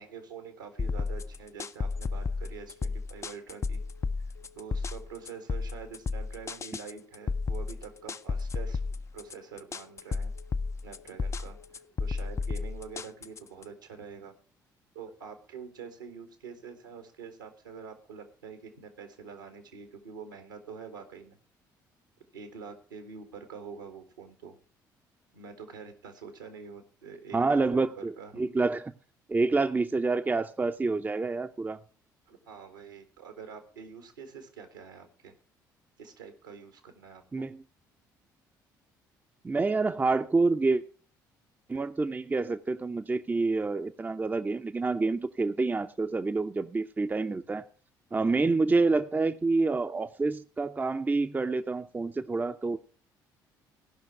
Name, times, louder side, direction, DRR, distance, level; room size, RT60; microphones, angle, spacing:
voice 1, 0.0-3.8 4.5-8.8 9.1-10.3 10.8-14.3 14.9-21.4 22.3-24.6 25.3-27.9 28.2-28.4 32.3-35.3 36.0-37.4 48.2-48.4, right 6 dB, 80° right, 1.7 m, -46 dB
sound 1, 0.8-13.6, left 4 dB, 30° left, 0.5 m, -33 dB
Telephone, 1.9-2.3 2.5-2.9 3.1-3.5 3.7-4.1 4.3-4.7 4.9-5.3 5.5-5.9 6.1-6.5 6.7-7.1 7.3-7.7 7.9-8.3 8.5-8.9 9.1-9.5 9.7-10.1 10.3-10.7 10.9-11.3 11.5-11.9 12.1-12.5 12.7-13.1, left 7 dB, 85° left, 1.7 m, -58 dB
voice 2, 27.3-28.9 29.3-31.8 37.3-37.6 39.4-40.8 41.7-47.7 48.1-52.8, right 3 dB, 15° right, 0.6 m, -28 dB
16.5 x 5.8 x 5.9 m
figure-of-eight pair, 50°, 10 cm